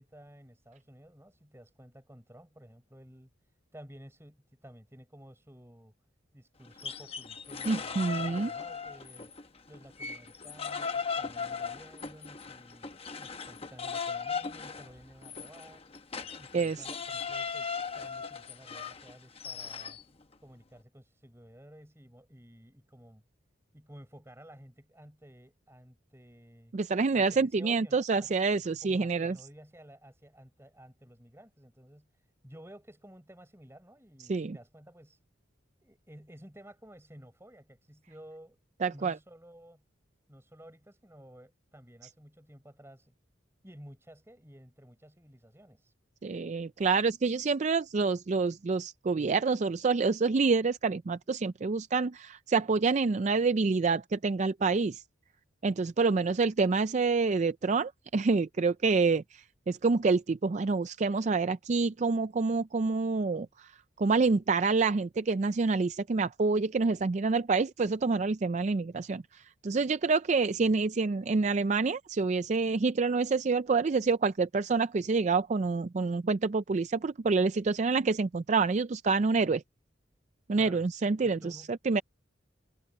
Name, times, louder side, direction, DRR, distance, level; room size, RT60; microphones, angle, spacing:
voice 1, 0.0-3.3 3.7-5.9 6.3-9.3 9.7-12.8 13.2-15.8 16.4-20.0 20.4-23.2 23.7-26.7 27.1-28.3 28.8-32.1 32.4-35.2 35.8-38.6 38.9-39.8 40.3-43.1 43.6-45.9 80.6-80.8 81.2-81.7, equal, 15° right, 6.9 m, -53 dB
sound 1, 6.7-9.4 9.7-20.0, left 5 dB, 30° left, 1.0 m, -38 dB
voice 2, 7.7-8.5 16.5-16.8 26.7-29.4 34.3-34.6 38.8-39.2 46.2-55.0 55.6-59.2 59.7-63.7 64.0-79.6 80.5-82.0, right 4 dB, 35° right, 0.4 m, -27 dB
head